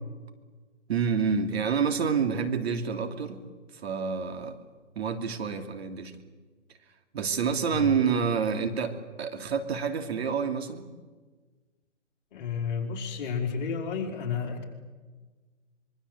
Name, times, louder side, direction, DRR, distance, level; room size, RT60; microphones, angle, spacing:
voice 1, 0.9-3.4 3.7-4.6 4.9-6.1 7.1-10.9, right 6 dB, 60° right, 6 dB, 2.9 m, -28 dB
voice 2, 12.3-14.6, left 6 dB, 35° left, 1 dB, 4.7 m, -31 dB
25.5 x 23.5 x 8.1 m, 1.4 s
hypercardioid pair, 145°, 37 cm